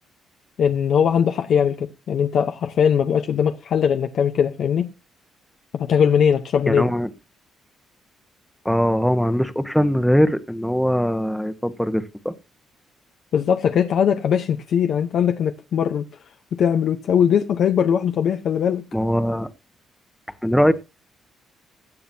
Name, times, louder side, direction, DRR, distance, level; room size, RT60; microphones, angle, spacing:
voice 1, 0.6-4.9 5.7-6.9 13.3-16.1 16.5-18.9, left 8 dB, 65° left, 0.9 m, -20 dB
voice 2, 6.7-7.1 8.6-12.3 18.9-19.5 20.4-20.7, equal, ahead, 1.2 m, -21 dB
16.5 x 10.0 x 2.8 m
cardioid pair, 90°, 0 cm